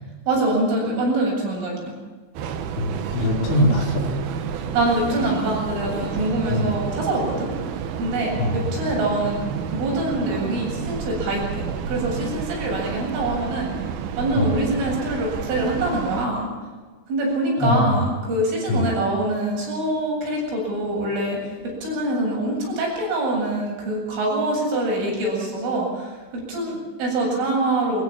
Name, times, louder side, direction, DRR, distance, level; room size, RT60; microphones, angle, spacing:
voice 1, 0.3-1.9 4.5-7.5 8.0-9.4 9.7-13.7 14.2-16.5 17.1-28.0, right 1 dB, 80° right, -2 dB, 10.5 m, -24 dB
Train, 2.3-16.3, right 7 dB, 65° right, 2.6 m, -30 dB
voice 2, 2.8-4.0 6.5-6.7 8.4-8.5 14.4-14.5 17.6-18.0 18.7-18.9, left 1 dB, 70° left, -1 dB, 6.8 m, -21 dB
22.5 x 21.0 x 7.5 m, 1.4 s
omnidirectional pair, 5.6 m